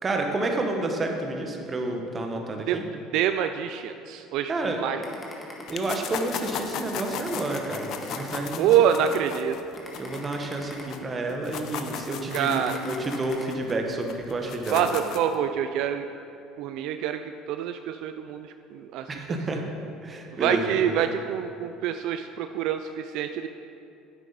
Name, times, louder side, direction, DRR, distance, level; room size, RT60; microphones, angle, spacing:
voice 1, 0.0-2.8 4.5-4.8 5.7-8.7 10.0-14.8 19.1-19.6 20.0-21.0, right 2 dB, 25° right, 3 dB, 1.1 m, -30 dB
voice 2, 3.1-5.0 8.6-9.6 12.3-12.8 14.7-16.1 16.6-19.4 20.3-23.5, right 9 dB, 70° right, 8 dB, 0.3 m, -26 dB
sound 1, 5.0-6.2 6.6-6.8 7.2-8.8 9.2-9.4 9.7-11.4 11.8-12.0 12.4-13.4, left 1 dB, 15° left, 1.6 m, -43 dB
sound 2, 5.7-11.0 11.3-15.4, left 7 dB, 60° left, 0.6 m, -36 dB
10.0 x 8.3 x 4.0 m, 2.7 s
cardioid pair, 120°, 0 cm